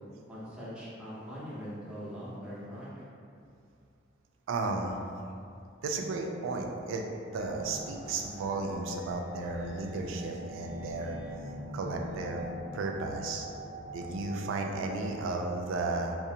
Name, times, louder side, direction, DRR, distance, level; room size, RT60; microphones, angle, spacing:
voice 1, 0.3-3.0, equal, 5° right, -10 dB, 0.6 m, -42 dB
voice 2, 4.5-5.0 5.8-7.0 7.3-11.2 11.7-13.5 13.9-16.2, right 3 dB, 90° right, 3 dB, 0.3 m, -34 dB
sound 1, 7.3-15.3, equal, 30° left, 0.6 m, -44 dB
2.5 x 2.1 x 2.7 m, 2.4 s
head